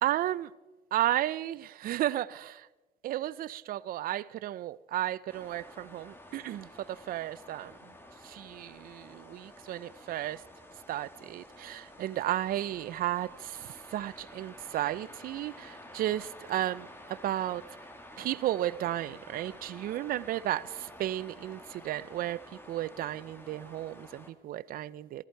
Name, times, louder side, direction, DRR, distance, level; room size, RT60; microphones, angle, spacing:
voice 1, 0.0-0.5 0.9-2.7 3.0-7.9 8.2-10.4 10.9-17.6 18.2-22.4 22.7-25.3, right 13 dB, 60° right, 0.5 m, -33 dB
sound 1, 5.3-24.3, left 1 dB, 15° left, 1.3 m, -51 dB
15.5 x 14.0 x 4.5 m
cardioid pair, 110°, 17 cm